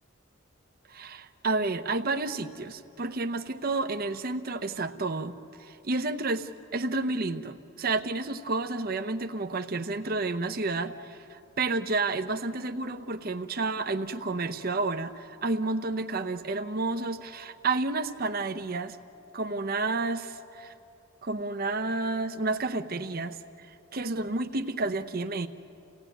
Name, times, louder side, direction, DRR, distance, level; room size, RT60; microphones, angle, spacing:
voice 1, 0.9-5.3 5.6-19.0 19.3-20.7 21.2-23.4 23.7-25.5, right 3 dB, 45° right, 7 dB, 0.8 m, -30 dB
29.5 x 16.5 x 9.2 m, 2.7 s
head